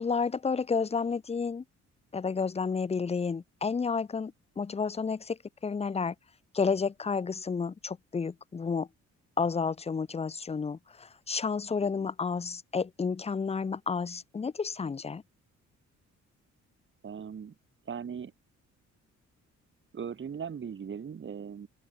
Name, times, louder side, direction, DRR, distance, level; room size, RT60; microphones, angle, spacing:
voice 1, 0.0-1.6 2.1-6.1 6.5-8.9 9.4-15.2, left 5 dB, 20° left, 0.6 m, -31 dB
voice 2, 17.0-17.6 17.9-18.3 19.9-21.7, right 7 dB, 40° right, 1.8 m, -39 dB
open air
cardioid pair, 90°, 30 cm